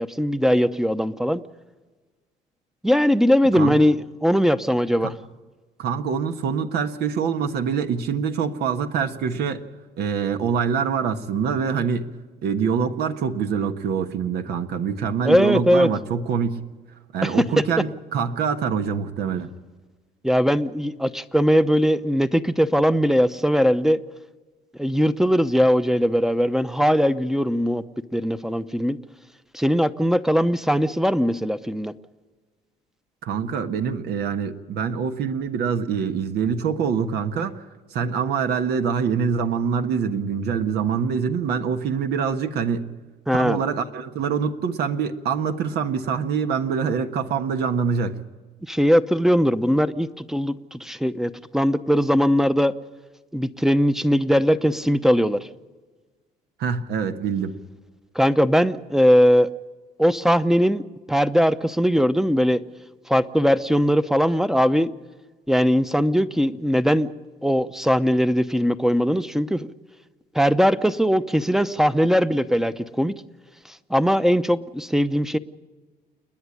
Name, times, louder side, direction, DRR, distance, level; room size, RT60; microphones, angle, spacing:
voice 1, 0.0-1.4 2.8-5.1 15.2-15.9 17.2-17.6 20.2-24.0 24.8-27.8 28.1-29.0 29.5-31.9 43.3-43.6 48.7-52.7 53.3-55.4 58.1-59.5 60.0-60.8 61.1-62.6 63.1-64.9 65.5-67.1 67.4-69.7 70.3-73.1 73.9-75.4, equal, 5° right, 12 dB, 0.8 m, -20 dB
voice 2, 5.8-9.6 10.0-12.1 12.4-16.6 17.1-19.5 33.2-37.6 37.9-42.9 43.3-48.2 56.6-57.6, right 6 dB, 75° right, 7 dB, 1.4 m, -25 dB
29.0 x 10.5 x 9.8 m, 1.3 s
cardioid pair, 110°, 17 cm